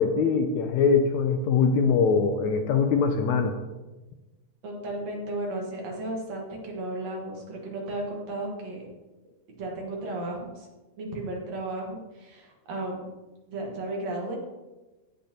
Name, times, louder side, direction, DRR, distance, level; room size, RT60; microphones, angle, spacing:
voice 1, 0.0-3.6, left 5 dB, 80° left, 6 dB, 1.7 m, -22 dB
voice 2, 4.6-8.9 9.5-10.7 11.0-13.0 13.5-14.4, right 2 dB, 60° right, -1 dB, 2.6 m, -34 dB
16.5 x 5.6 x 3.0 m, 1.1 s
omnidirectional pair, 3.6 m